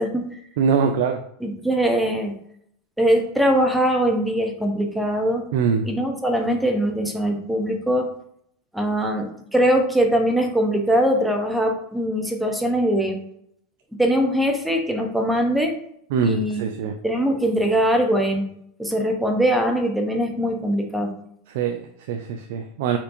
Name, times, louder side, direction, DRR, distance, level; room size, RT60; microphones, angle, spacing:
voice 1, 0.0-0.4 1.4-2.4 3.0-5.4 5.8-8.1 8.7-13.2 14.0-15.7 16.2-16.7 17.0-18.5 18.8-21.1, equal, 5° right, 3 dB, 0.6 m, -21 dB
voice 2, 0.6-1.2 5.5-5.9 16.1-17.0 21.5-23.0, right 6 dB, 65° right, 7 dB, 0.3 m, -23 dB
4.3 x 2.6 x 2.5 m, 0.71 s
hypercardioid pair, 95°, 0 cm